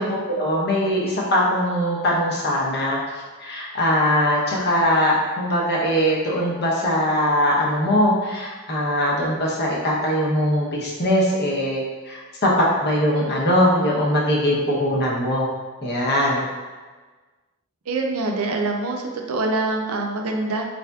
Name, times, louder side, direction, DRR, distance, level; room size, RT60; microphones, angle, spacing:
voice 1, 0.0-3.0 3.4-15.5 15.8-16.5, equal, 50° left, -4 dB, 0.8 m, -21 dB
voice 2, 17.9-19.0 19.3-20.7, right 2 dB, 80° right, 2 dB, 0.5 m, -24 dB
4.0 x 3.4 x 2.3 m, 1.3 s
head